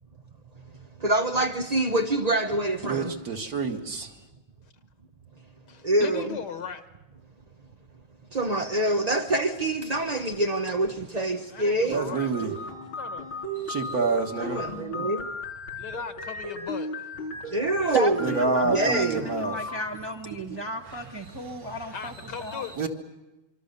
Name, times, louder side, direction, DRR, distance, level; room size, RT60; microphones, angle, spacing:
voice 1, 1.0-3.1 5.8-6.4 8.3-12.0 14.4-15.3 17.5-18.4 18.6-19.3 20.5-20.6, right 2 dB, 65° right, 4 dB, 0.4 m, -26 dB
voice 2, 2.8-4.1 11.9-12.5 13.6-14.7 18.2-19.6 20.9-21.0 21.4-21.8 22.8-22.9, right 3 dB, 50° right, 4 dB, 2.1 m, -28 dB
voice 3, 5.7-6.9 11.5-12.3 13.0-13.3 15.8-17.1 21.9-22.7, left 6 dB, 60° left, 10 dB, 1.7 m, -38 dB
sound 1, 11.9-19.9, left 2 dB, 90° left, 4.5 m, -36 dB
voice 4, 17.9-22.1 22.4-22.7, right 2 dB, 20° right, 1 dB, 0.8 m, -34 dB
25.5 x 24.5 x 6.8 m, 1.0 s
omnidirectional pair, 2.2 m